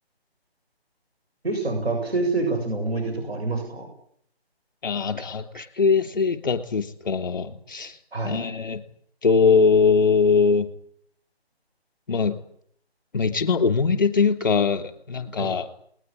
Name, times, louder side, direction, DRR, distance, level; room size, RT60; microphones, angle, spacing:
voice 1, 1.4-3.9 8.1-8.4 15.4-15.5, right 3 dB, 70° right, 1 dB, 7.5 m, -26 dB
voice 2, 4.8-8.0 8.2-8.8 9.2-10.7 12.1-12.4 13.1-15.7, left 5 dB, 45° left, 8 dB, 3.3 m, -21 dB
20.0 x 20.0 x 10.0 m, 0.66 s
figure-of-eight pair, 155°, 32 cm